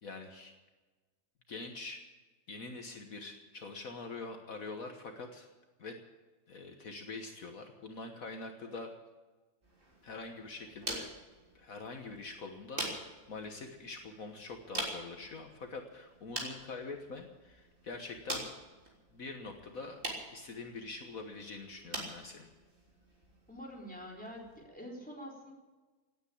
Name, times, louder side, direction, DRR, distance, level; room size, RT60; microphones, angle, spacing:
voice 1, 0.0-0.5 1.5-2.0 2.5-5.5 5.8-6.0 6.5-8.9 10.0-11.1 11.5-18.5 19.1-20.0 20.3-22.5, left 3 dB, 65° left, 4 dB, 1.7 m, -44 dB
sound 1, 9.6-24.7, right 1 dB, 35° right, 3.7 m, -45 dB
voice 2, 23.5-25.5, equal, 5° left, -2 dB, 4.0 m, -46 dB
18.0 x 9.4 x 8.6 m, 1.3 s
omnidirectional pair, 1.6 m